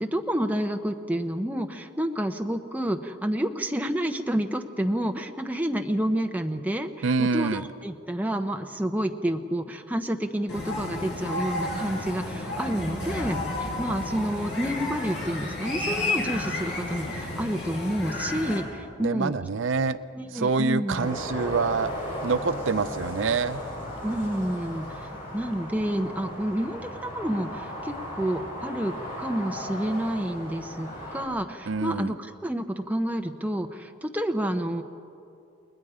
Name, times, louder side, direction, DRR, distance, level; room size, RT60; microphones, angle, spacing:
voice 1, 0.0-19.4 20.1-21.1 24.0-34.8, right 1 dB, 10° right, 5 dB, 0.8 m, -29 dB
voice 2, 7.0-7.7 19.0-20.0 20.3-21.9 22.2-23.6 31.7-32.1, right 4 dB, 75° right, 13 dB, 0.5 m, -26 dB
sound 1, 10.5-18.6, left 2 dB, 55° left, 6.5 m, -31 dB
sound 2, 20.9-31.3, equal, 40° left, 7.3 m, -36 dB
29.5 x 20.5 x 5.0 m, 2.5 s
head